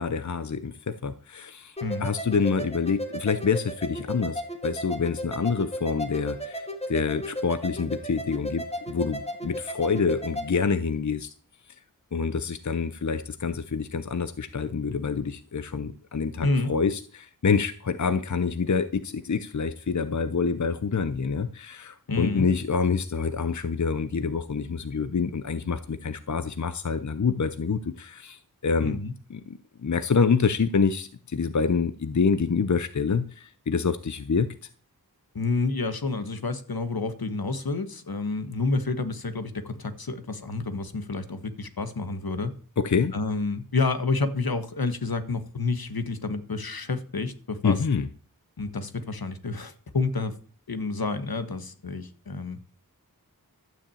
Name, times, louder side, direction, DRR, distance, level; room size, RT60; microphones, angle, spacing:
voice 1, 0.0-11.3 12.1-29.0 29.3-34.5 42.8-43.1 47.6-48.1, left 5 dB, 50° left, 12 dB, 0.7 m, -27 dB
sound 1, 1.8-10.5, equal, 15° left, 2.3 m, -35 dB
voice 2, 16.4-16.7 22.1-22.5 28.8-29.1 35.3-42.5 43.1-47.8 48.6-50.3 50.7-52.6, left 3 dB, 80° left, 10 dB, 1.4 m, -29 dB
12.5 x 6.0 x 8.5 m, 0.41 s
wide cardioid pair, 50°, 36 cm